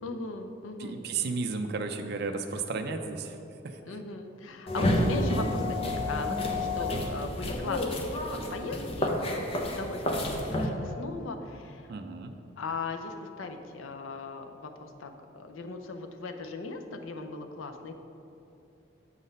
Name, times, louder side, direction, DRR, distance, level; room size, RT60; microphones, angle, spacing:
voice 1, 0.0-1.0 3.9-7.8 8.1-11.9 12.6-17.9, left 3 dB, 85° left, 6 dB, 0.6 m, -38 dB
voice 2, 0.8-3.4 3.6-3.7 6.9-7.1 11.9-12.3, right 4 dB, 55° right, 5 dB, 0.4 m, -33 dB
sound 1, 4.7-10.7, left 1 dB, 30° left, 0.6 m, -29 dB
7.3 x 4.0 x 5.3 m, 2.8 s
head